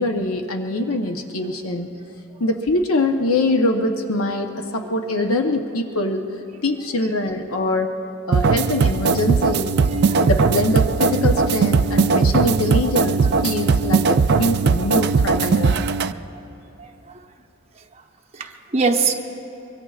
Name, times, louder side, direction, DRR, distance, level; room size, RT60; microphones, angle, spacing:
voice 1, 0.0-1.9 2.4-6.3 6.6-7.9 8.3-9.7 10.2-15.8, left 2 dB, 80° left, 4 dB, 0.9 m, -23 dB
sound 1, 8.3-16.1, right 5 dB, 50° right, 0.4 m, -19 dB
voice 2, 9.9-10.3 16.0-16.2 16.8-17.2 18.3-19.1, right 4 dB, 30° right, 2 dB, 1.0 m, -25 dB
24.0 x 23.0 x 2.4 m, 3.0 s
head